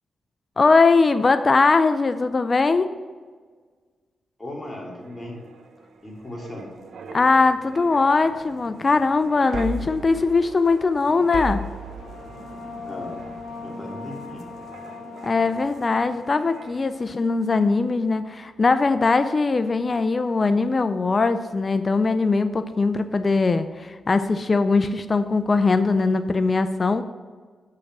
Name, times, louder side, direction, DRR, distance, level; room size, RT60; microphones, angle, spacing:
voice 1, 0.6-2.9 7.1-11.6 15.2-27.0, left 3 dB, 40° left, 10 dB, 0.5 m, -20 dB
voice 2, 4.4-5.4 6.0-6.7 12.8-13.2 13.6-14.5, left 1 dB, 25° left, -1 dB, 2.6 m, -37 dB
sound 1, 4.8-17.1 17.5-17.7, right 3 dB, 70° right, 0.7 m, -39 dB
sound 2, 11.1-18.3, left 4 dB, 85° left, 1.4 m, -41 dB
6.6 x 5.7 x 6.1 m, 1.5 s
supercardioid pair, 55°, 0 cm